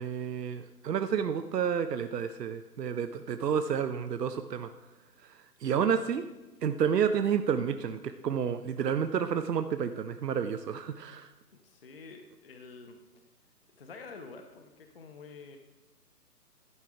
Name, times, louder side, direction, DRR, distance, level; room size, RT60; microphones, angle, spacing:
voice 1, 0.0-4.7 5.2-6.2 6.6-11.3, right 7 dB, 80° right, 9 dB, 0.6 m, -30 dB
voice 2, 11.6-13.0 13.8-15.6, left 4 dB, 40° left, 5 dB, 0.6 m, -48 dB
11.0 x 4.6 x 5.0 m, 1.1 s
figure-of-eight pair, 145°, 48 cm